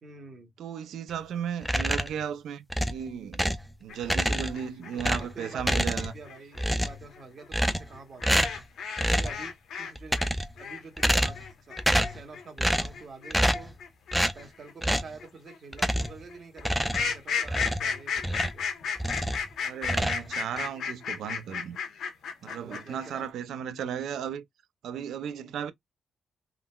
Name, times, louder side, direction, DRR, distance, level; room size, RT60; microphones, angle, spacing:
voice 1, 0.0-0.5 4.1-4.3 4.9-8.5 9.0-10.3 10.6-13.8 14.3-18.6 22.4-23.2 23.7-24.0, right 4 dB, 45° right, 1.1 m, -47 dB
voice 2, 0.6-2.6 2.9-3.4 3.8-6.1 19.6-21.8 22.4-24.5 24.8-25.7, right 8 dB, 85° right, 0.4 m, -35 dB
sound 1, 1.6-2.2 2.7-3.7 4.0-4.7 5.0-6.3 6.5-7.1 7.5-8.0 8.2-8.6 9.0-9.4 9.9-10.6 11.0-11.5 11.8-12.2 12.6-13.0 13.3-13.7 14.1-14.4 14.8-15.1 15.7-16.2 16.6-18.6 19.0-19.5 19.8-20.7, equal, ahead, 0.4 m, -27 dB
sound 2, 3.9-9.9 10.2-23.1, left 6 dB, 80° left, 0.8 m, -34 dB
3.7 x 2.1 x 2.3 m
cardioid pair, 125°, 0 cm